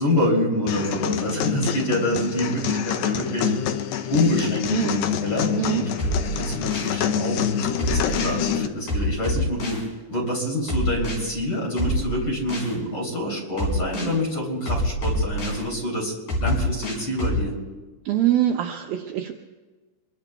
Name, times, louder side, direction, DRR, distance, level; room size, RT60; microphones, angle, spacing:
voice 1, 0.0-3.5 4.1-9.8 10.1-17.6, left 1 dB, 30° left, -2 dB, 3.4 m, -26 dB
sound 1, 0.7-8.7, left 9 dB, 80° left, 2.2 m, -26 dB
sound 2, 6.0-7.0 7.8-8.4 8.9-9.8 10.7-11.2 11.8-12.7 13.6-14.1 14.7-15.6 16.3-17.4, equal, 50° left, 4.9 m, -26 dB
voice 2, 18.1-19.3, right 12 dB, 75° right, 3 dB, 2.2 m, -23 dB
26.5 x 22.5 x 2.3 m, 1.3 s
omnidirectional pair, 4.7 m